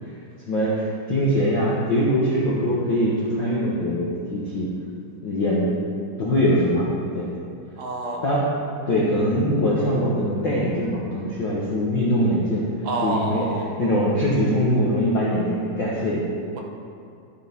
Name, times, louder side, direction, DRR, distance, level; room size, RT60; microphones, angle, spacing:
voice 1, 0.5-4.7 5.2-5.8 6.2-6.8 7.1-7.3 8.2-8.5 8.9-12.6 13.0-13.4 13.8-16.2, equal, 50° left, -7 dB, 1.6 m, -22 dB
voice 2, 7.8-8.4 12.8-13.7, right 2 dB, 70° right, 0 dB, 1.0 m, -28 dB
12.0 x 9.8 x 3.6 m, 2.4 s
omnidirectional pair, 3.4 m